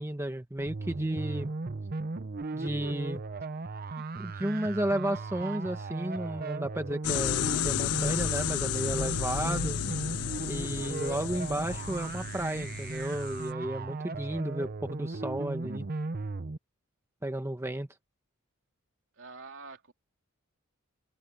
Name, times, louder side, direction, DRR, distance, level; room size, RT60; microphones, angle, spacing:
voice 1, 0.0-1.5 2.5-3.2 4.1-9.8 10.4-15.8 17.2-17.9, right 1 dB, 10° right, 1.1 m, -33 dB
sound 1, 0.6-16.6, right 3 dB, 45° right, 0.7 m, -37 dB
sound 2, 7.0-13.5, left 11 dB, 80° left, 0.4 m, -33 dB
voice 2, 19.2-19.9, right 4 dB, 60° right, 3.5 m, -46 dB
head